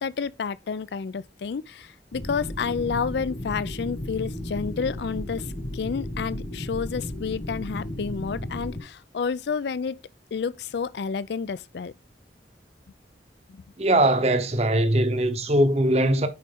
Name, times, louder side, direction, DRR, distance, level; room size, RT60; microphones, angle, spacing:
voice 1, 0.0-5.5 5.7-10.0 10.3-11.9 13.5-13.6, left 5 dB, 70° left, 0.4 m, -30 dB
sound 1, 2.1-8.8, left 1 dB, 45° left, 1.3 m, -34 dB
voice 2, 13.8-16.3, right 1 dB, 35° right, 0.8 m, -21 dB
9.3 x 4.2 x 3.7 m
head